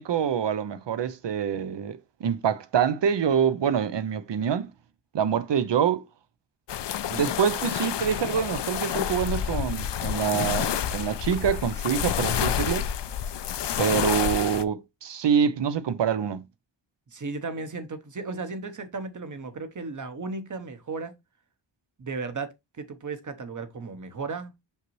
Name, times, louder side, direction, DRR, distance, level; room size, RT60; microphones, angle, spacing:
voice 1, 0.0-4.7 5.1-6.0 7.1-12.9 13.8-16.4, right 8 dB, 70° right, 0.8 m, -26 dB
sound 1, 6.7-14.6, left 10 dB, 70° left, 0.6 m, -29 dB
voice 2, 17.1-21.1 22.0-24.5, right 4 dB, 40° right, 1.0 m, -35 dB
6.0 x 5.6 x 3.1 m
wide cardioid pair, 140°, 44 cm